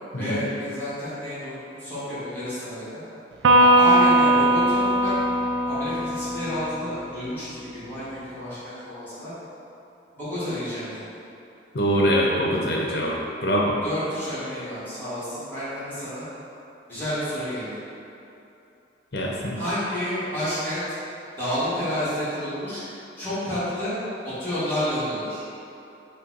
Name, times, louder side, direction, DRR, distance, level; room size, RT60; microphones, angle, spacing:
voice 1, 0.2-3.0 3.5-5.2 5.7-9.3 10.1-11.0 13.8-16.2 16.9-17.8 19.6-20.8 21.4-22.8 23.2-23.9 24.2-25.4, equal, 10° left, -13 dB, 1.5 m, -30 dB
Electric guitar, 3.4-7.0, right 1 dB, 80° right, 0.4 m, -19 dB
voice 2, 11.7-13.1 13.4-13.8 19.1-19.6, equal, 60° left, -2 dB, 0.7 m, -23 dB
5.5 x 2.2 x 3.9 m, 2.8 s
head